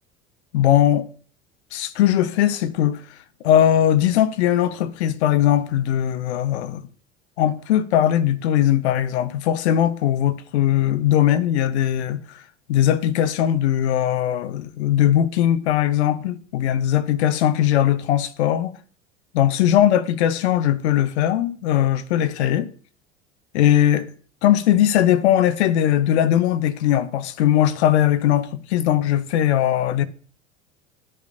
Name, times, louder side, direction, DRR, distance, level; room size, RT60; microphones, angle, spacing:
voice 1, 0.5-1.1 1.7-3.0 3.4-6.8 7.4-12.4 12.7-18.8 19.3-22.7 23.5-24.1 24.4-30.1, left 11 dB, 60° left, 0.6 m, -19 dB
13.0 x 5.4 x 2.5 m
figure-of-eight pair, 70°, 38 cm